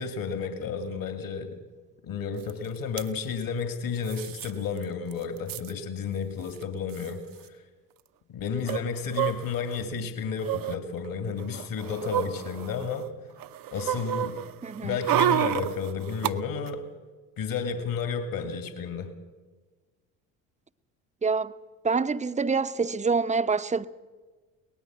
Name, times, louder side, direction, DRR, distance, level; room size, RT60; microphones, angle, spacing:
voice 1, 0.0-1.6 2.0-7.2 8.3-13.1 13.7-14.4 14.8-16.8 17.4-19.1, left 5 dB, 50° left, 2.4 m, -32 dB
sound 1, 2.5-2.6 2.8-3.1 4.1-4.5 4.8-4.9 5.1-5.7 6.6-6.7 6.9-7.1 8.7-9.8 10.4-10.8 11.4-13.0 13.4-16.3 16.7-16.8, right 12 dB, 50° right, 0.8 m, -29 dB
voice 2, 14.6-15.0 21.2-21.5 21.8-23.9, right 4 dB, 15° right, 0.8 m, -26 dB
23.0 x 19.0 x 6.2 m
hypercardioid pair, 60°, 42 cm